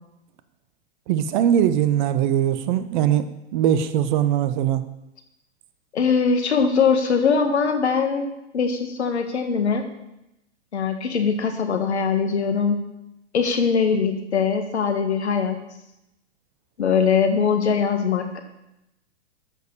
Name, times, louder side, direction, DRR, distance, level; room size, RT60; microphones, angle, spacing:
voice 1, 1.1-4.8, right 10 dB, 45° right, 12 dB, 0.9 m, -21 dB
voice 2, 5.9-9.9 10.7-12.8 13.3-15.6 16.8-18.4, left 6 dB, 70° left, 6 dB, 2.0 m, -21 dB
12.5 x 6.6 x 6.9 m, 0.88 s
figure-of-eight pair, 100°, 34 cm